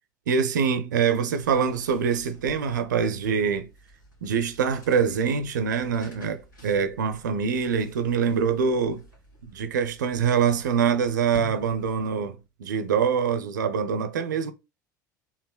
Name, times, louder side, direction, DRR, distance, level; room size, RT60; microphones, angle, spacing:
voice 1, 0.3-3.7 4.2-9.0 9.5-14.5, right 6 dB, 70° right, 0.5 m, -24 dB
sound 1, 1.2-12.3, right 1 dB, 85° left, 2.6 m, -51 dB
4.8 x 3.5 x 2.2 m
figure-of-eight pair, 70°, 10 cm